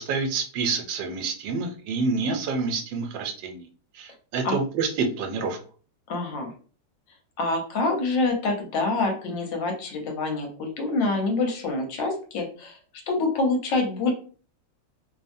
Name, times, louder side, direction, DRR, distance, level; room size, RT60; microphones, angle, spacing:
voice 1, 0.0-3.7 3.9-5.6, right 4 dB, 85° right, 4 dB, 1.3 m, -28 dB
voice 2, 6.1-6.5 7.4-12.8 13.1-14.1, left 3 dB, 80° left, 2 dB, 1.5 m, -26 dB
3.4 x 2.1 x 2.5 m, 0.40 s
omnidirectional pair, 2.0 m